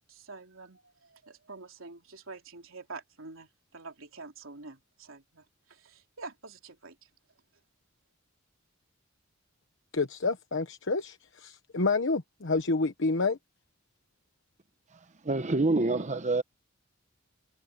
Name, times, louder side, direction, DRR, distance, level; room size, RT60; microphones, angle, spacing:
voice 1, 0.0-7.1, right 3 dB, 75° right, 3.7 m, -47 dB
voice 2, 9.9-13.4, left 3 dB, 65° left, 1.1 m, -29 dB
voice 3, 15.2-16.4, right 2 dB, 35° right, 0.9 m, -26 dB
head